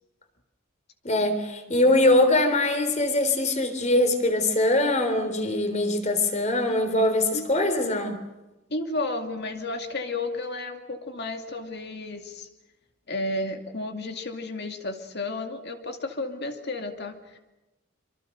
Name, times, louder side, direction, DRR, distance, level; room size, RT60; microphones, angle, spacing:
voice 1, 1.0-8.2, left 1 dB, 35° left, 8 dB, 3.6 m, -22 dB
voice 2, 8.7-12.5 13.1-17.4, left 2 dB, 50° left, 5 dB, 2.4 m, -32 dB
26.0 x 24.5 x 6.6 m, 1.0 s
head